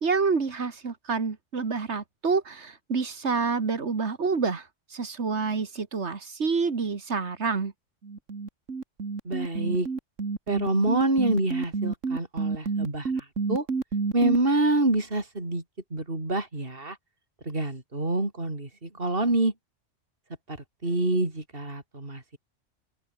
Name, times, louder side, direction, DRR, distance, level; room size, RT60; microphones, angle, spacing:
voice 1, 0.0-4.6 4.9-7.7, right 4 dB, 65° right, 2.1 m, -28 dB
sound 1, 8.0-14.4, right 4 dB, 90° right, 2.7 m, -29 dB
voice 2, 9.2-9.9 10.5-13.7 14.1-15.6 15.9-17.0 17.4-19.5 20.5-20.6 20.8-22.4, right 2 dB, 50° right, 4.7 m, -26 dB
omnidirectional pair, 1.3 m